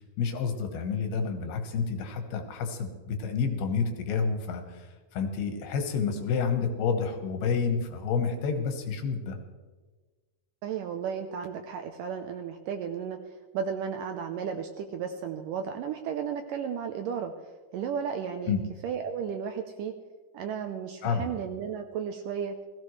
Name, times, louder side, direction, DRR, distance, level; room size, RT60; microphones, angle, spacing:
voice 1, 0.2-4.9 5.1-9.4 18.4-18.6 21.0-21.3, left 5 dB, 85° left, 5 dB, 3.3 m, -29 dB
voice 2, 10.6-13.2 13.5-18.5 18.8-19.9 20.3-22.6, right 7 dB, 75° right, 6 dB, 2.1 m, -34 dB
20.0 x 15.0 x 3.2 m, 1.3 s
omnidirectional pair, 4.4 m